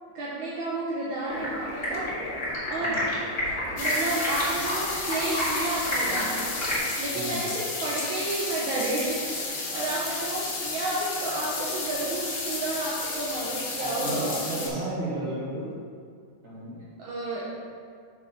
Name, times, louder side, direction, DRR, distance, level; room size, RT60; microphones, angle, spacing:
voice 1, 0.2-2.1 2.7-3.1 3.5-6.5 7.0-14.8 17.0-17.5, right 2 dB, 80° right, -6 dB, 1.7 m, -31 dB
Stream, 1.3-6.8, left 1 dB, 30° left, 2.1 m, -30 dB
voice 2, 2.8-3.1 7.1-7.5 13.8-15.7 16.4-16.8, right 1 dB, 40° right, -8 dB, 2.2 m, -33 dB
sound 1, 3.8-14.7, left 3 dB, 70° left, 1.8 m, -32 dB
8.0 x 3.5 x 5.5 m, 2.2 s
omnidirectional pair, 2.2 m